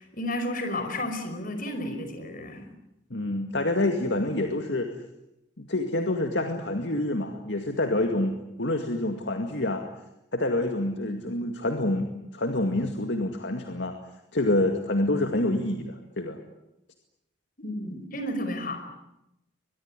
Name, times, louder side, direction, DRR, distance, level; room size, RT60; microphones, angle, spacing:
voice 1, 0.0-2.7 17.6-18.8, left 1 dB, 45° left, 8 dB, 5.2 m, -32 dB
voice 2, 3.1-4.9 5.6-9.9 10.3-14.0 14.3-16.4, left 1 dB, 65° left, 5 dB, 2.1 m, -27 dB
23.5 x 21.5 x 9.9 m, 0.88 s
head